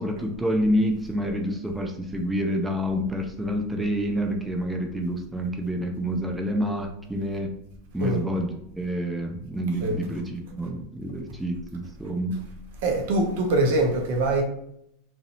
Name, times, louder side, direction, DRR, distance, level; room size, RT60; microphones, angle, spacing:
voice 1, 0.0-7.6 7.9-12.4, equal, 10° right, 0.5 m, -28 dB
voice 2, 12.8-14.4, right 2 dB, 65° right, 0.5 m, -23 dB
2.5 x 2.0 x 2.7 m
hypercardioid pair, 90°, 0 cm